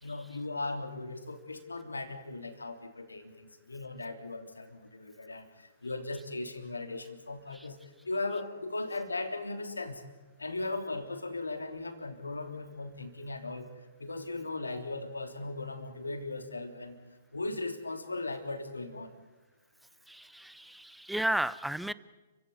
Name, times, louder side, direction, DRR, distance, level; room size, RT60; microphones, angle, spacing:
voice 1, 0.0-7.8 8.0-10.0 10.4-13.7 14.0-17.0 17.3-19.1, left 2 dB, 85° left, 7 dB, 3.3 m, -38 dB
voice 2, 20.1-21.9, right 1 dB, ahead, 17 dB, 0.8 m, -33 dB
30.0 x 16.0 x 9.5 m, 1.2 s
figure-of-eight pair, 120°, 0 cm